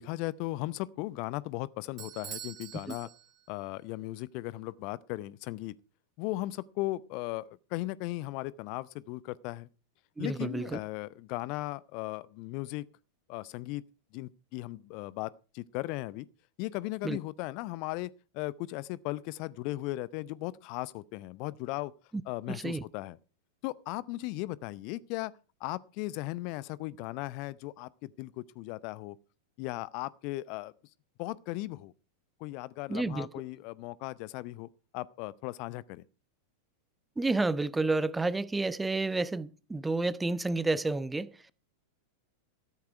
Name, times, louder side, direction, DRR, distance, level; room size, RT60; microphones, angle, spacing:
voice 1, 0.0-3.1 3.5-5.7 6.2-9.7 10.2-12.9 13.3-13.8 14.1-16.3 16.6-21.9 22.3-23.2 23.6-25.3 25.6-29.2 29.6-30.7 31.2-31.9 32.4-36.0, left 18 dB, 45° left, 0.6 m, -37 dB
Bell / Doorbell, 2.0-3.7, right 11 dB, 35° right, 2.2 m, -45 dB
voice 2, 10.2-10.8 17.0-17.2 22.5-22.8 32.9-33.3 37.2-41.3, right 3 dB, 10° right, 0.6 m, -30 dB
14.0 x 13.0 x 4.4 m
figure-of-eight pair, 90°, 0 cm